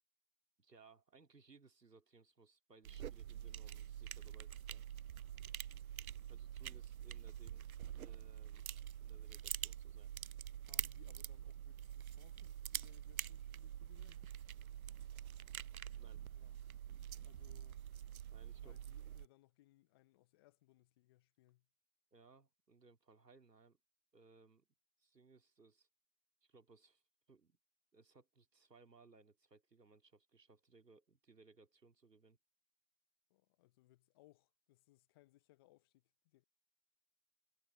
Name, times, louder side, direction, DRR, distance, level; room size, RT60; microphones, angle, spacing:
voice 1, 0.6-4.9 6.3-7.7 8.0-8.6 9.0-10.1 16.0-16.2 18.3-18.8 22.1-23.8 24.1-24.7 25.0-25.9 26.4-27.0 27.3-27.6 27.9-32.4, right 4 dB, 85° right, 3.0 m, -65 dB
sound 1, 2.9-19.3, right 10 dB, 60° right, 0.5 m, -46 dB
voice 2, 10.6-14.3 16.3-16.7 17.2-17.9 18.6-21.7 33.3-36.4, left 18 dB, 15° left, 0.9 m, -69 dB
figure-of-eight pair, 140°, 48 cm